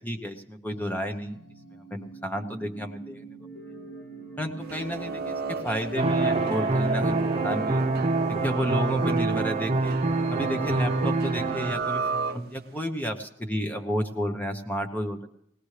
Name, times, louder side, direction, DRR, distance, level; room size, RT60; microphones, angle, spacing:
voice 1, 0.0-1.4 1.8-3.2 4.4-7.8 8.3-10.0 10.3-15.3, equal, 10° left, 6 dB, 1.0 m, -31 dB
sound 1, 0.7-12.1, right 2 dB, 65° left, 2.2 m, -42 dB
sound 2, 4.6-12.8, right 4 dB, 55° right, 0.6 m, -35 dB
sound 3, 6.0-11.7, right 3 dB, 35° right, 0.9 m, -25 dB
19.5 x 18.0 x 3.3 m, 0.76 s
head